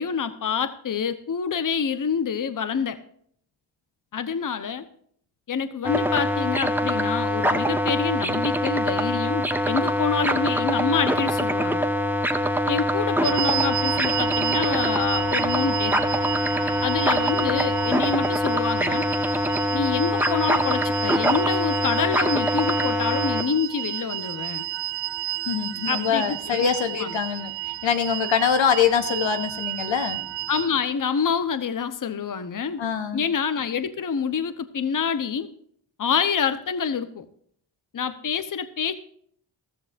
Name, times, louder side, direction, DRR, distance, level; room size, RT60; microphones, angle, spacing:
voice 1, 0.0-3.0 4.1-4.8 5.5-11.8 12.7-16.0 16.8-19.1 19.7-24.7 25.9-26.7 26.9-27.1 30.5-32.8 33.1-35.5 36.0-37.2 37.9-38.9, left 6 dB, 40° left, 11 dB, 1.0 m, -27 dB
sound 1, 5.8-23.4, equal, 5° right, 1.2 m, -24 dB
sound 2, 13.2-30.7, right 14 dB, 65° right, 0.7 m, -31 dB
voice 2, 25.5-30.2 32.8-33.2, left 7 dB, 70° left, 8 dB, 1.2 m, -24 dB
15.0 x 13.5 x 2.6 m, 0.63 s
supercardioid pair, 45°, 48 cm